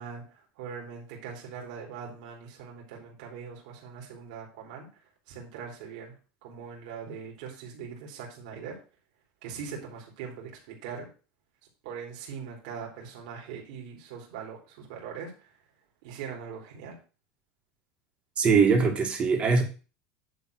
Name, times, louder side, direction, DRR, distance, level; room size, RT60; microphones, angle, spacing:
voice 1, 0.0-4.9 5.3-6.1 6.4-8.8 9.4-11.1 11.8-15.5 16.0-16.9, right 6 dB, 75° right, -1 dB, 3.3 m, -41 dB
voice 2, 18.4-19.6, right 5 dB, 30° right, 3 dB, 2.1 m, -22 dB
9.7 x 3.9 x 6.3 m, 0.35 s
supercardioid pair, 135°, 4 cm